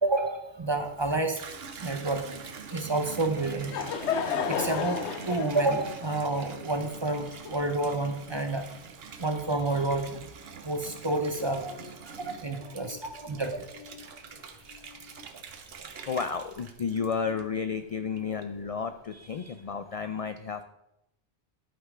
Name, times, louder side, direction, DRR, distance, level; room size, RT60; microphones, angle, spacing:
voice 1, 0.0-1.4 1.8-2.2 2.7-3.8 4.5-5.0 5.3-8.6 9.2-10.2 10.6-11.8 12.0-13.7, right 2 dB, 30° right, 7 dB, 0.7 m, -29 dB
Water tap faucet / Bathtub (filling or washing), 0.8-17.7 18.2-18.7, right 6 dB, 60° right, 1.0 m, -45 dB
Laughter / Crowd, 3.3-8.0, left 6 dB, 80° left, 1.0 m, -33 dB
voice 2, 11.3-11.9 12.5-14.4 14.7-15.2 15.6-15.7 16.1-20.6, left 6 dB, 60° left, 9 dB, 0.3 m, -34 dB
11.5 x 5.5 x 4.9 m, 0.85 s
omnidirectional pair, 1.2 m